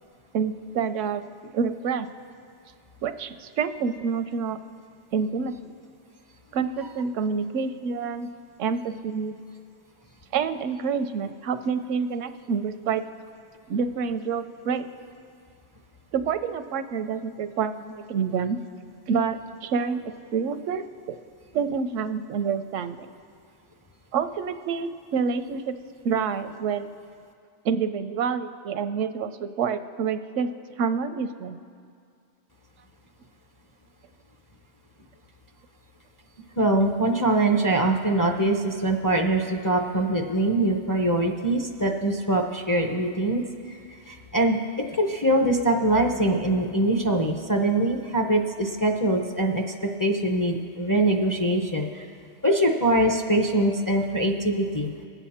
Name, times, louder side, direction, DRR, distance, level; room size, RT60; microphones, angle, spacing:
voice 1, 0.3-1.2 1.5-2.1 3.0-4.6 5.1-5.5 6.5-8.3 8.6-9.4 10.3-13.0 13.7-14.9 16.1-18.6 19.1-21.2 21.5-23.1 24.1-25.8 26.0-26.9 27.6-30.5 30.8-31.6, right 6 dB, 85° right, 11 dB, 1.0 m, -27 dB
voice 2, 36.6-43.4 44.1-44.6 45.0-49.6 50.0-52.0 52.4-54.9, right 1 dB, 25° left, 2 dB, 0.5 m, -23 dB
21.0 x 8.1 x 4.3 m, 2.3 s
omnidirectional pair, 1.3 m